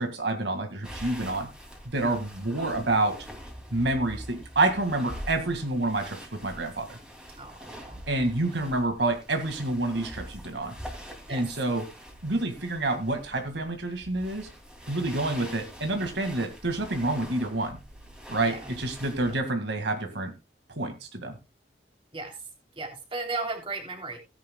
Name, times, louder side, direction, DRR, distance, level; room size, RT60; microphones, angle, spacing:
voice 1, 0.0-1.5 1.9-3.3 3.7-7.0 8.1-10.7 11.3-11.9 12.2-14.5 14.9-17.8 18.3-20.3 20.7-21.3, right 2 dB, 75° right, 5 dB, 2.0 m, -28 dB
sound 1, 0.8-19.4, equal, 5° right, 2.6 m, -44 dB
voice 2, 7.3-8.0 8.4-8.6 11.3-11.4 18.4-18.7 19.2-19.4 22.1-22.4 22.7-24.2, right 3 dB, 30° right, 3 dB, 3.1 m, -36 dB
17.0 x 10.5 x 2.3 m, 0.26 s
head